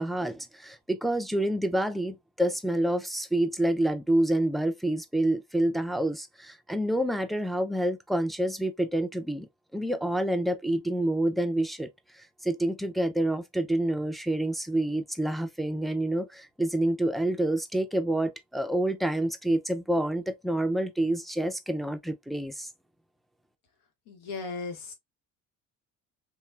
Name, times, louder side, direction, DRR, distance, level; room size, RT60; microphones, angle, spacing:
voice 1, 0.0-11.9 12.4-22.7, right 1 dB, ahead, 0.3 m, -28 dB
voice 2, 24.1-24.9, left 4 dB, 75° left, 1.0 m, -36 dB
3.1 x 2.2 x 2.2 m
hypercardioid pair, 60°, 40 cm